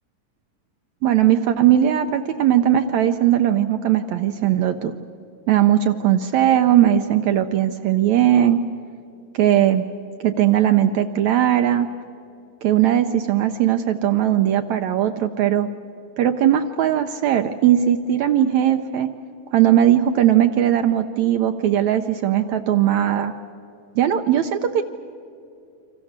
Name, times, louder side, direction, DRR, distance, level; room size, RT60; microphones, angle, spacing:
voice 1, 1.0-4.9 5.5-8.6 9.3-9.8 10.2-11.9 12.6-15.7 16.2-19.1 19.5-23.3 24.0-24.8, right 11 dB, 75° right, 7 dB, 1.8 m, -18 dB
28.0 x 25.5 x 7.3 m, 2.6 s
omnidirectional pair, 3.9 m